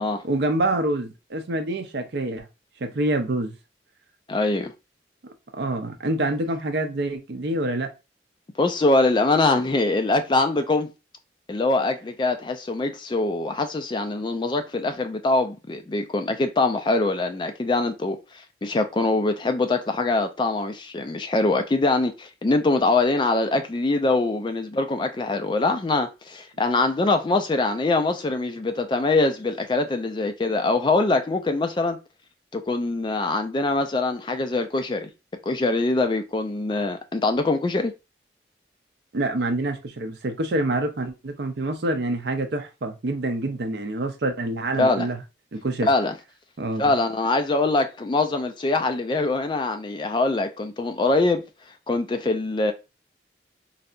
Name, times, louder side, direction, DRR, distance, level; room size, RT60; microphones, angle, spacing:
voice 1, 0.2-2.5 2.8-3.5 5.2-7.9 39.1-45.2 45.5-45.9 46.6-46.9, right 2 dB, 70° right, 0.5 m, -26 dB
voice 2, 4.3-4.7 8.6-10.9 11.5-32.0 32.5-35.1 35.5-37.9 44.8-45.1 45.8-46.1 46.8-51.4 51.9-52.7, left 2 dB, 25° left, 0.3 m, -23 dB
3.2 x 2.7 x 2.5 m
head